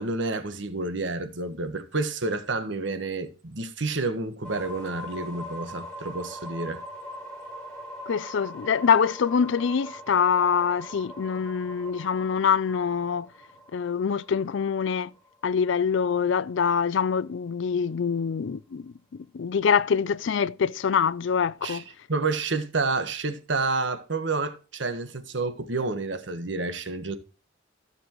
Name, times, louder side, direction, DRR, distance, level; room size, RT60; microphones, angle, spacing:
voice 1, 0.0-6.8 21.6-21.8 22.1-27.2, right 3 dB, 65° right, 1.3 m, -29 dB
sound 1, 4.4-16.2, equal, 5° left, 2.4 m, -42 dB
voice 2, 8.1-13.3 13.7-15.1 15.4-18.9 19.3-21.8, left 6 dB, 65° left, 0.4 m, -24 dB
15.0 x 7.0 x 3.0 m
head